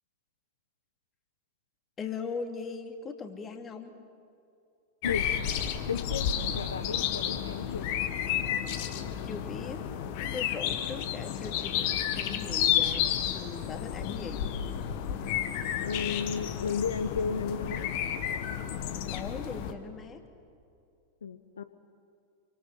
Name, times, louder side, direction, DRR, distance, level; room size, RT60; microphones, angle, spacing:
voice 1, 2.0-3.9 9.2-9.8 10.3-11.9 12.1-14.4 19.0-20.2, left 5 dB, 25° left, 5 dB, 2.8 m, -39 dB
sound 1, 5.0-19.7, left 9 dB, 50° left, 2.0 m, -31 dB
voice 2, 5.9-7.9 15.8-17.9 21.2-21.7, left 6 dB, 70° left, 10 dB, 1.0 m, -33 dB
28.0 x 24.5 x 8.3 m, 2.4 s
figure-of-eight pair, 90°, 0 cm